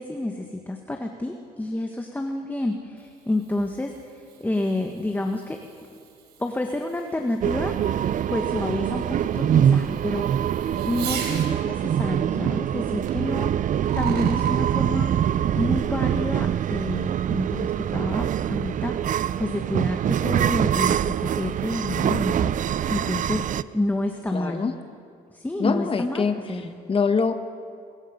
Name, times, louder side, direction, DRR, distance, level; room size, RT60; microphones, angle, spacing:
voice 1, 0.0-5.6 6.4-7.7 8.3-15.1 15.5-24.6 25.3-26.7, left 1 dB, 10° left, 3 dB, 1.7 m, -29 dB
Fireworks, 2.7-11.5 13.1-13.2 13.7-14.5, right 7 dB, 80° right, 3.9 m, -42 dB
sound 1, 7.4-23.6, right 10 dB, 50° right, 0.6 m, -24 dB
voice 2, 24.3-24.7 25.6-26.3 26.9-27.4, left 5 dB, 35° left, 7 dB, 1.4 m, -23 dB
30.0 x 21.5 x 5.3 m, 2.3 s
cardioid pair, 95°, 17 cm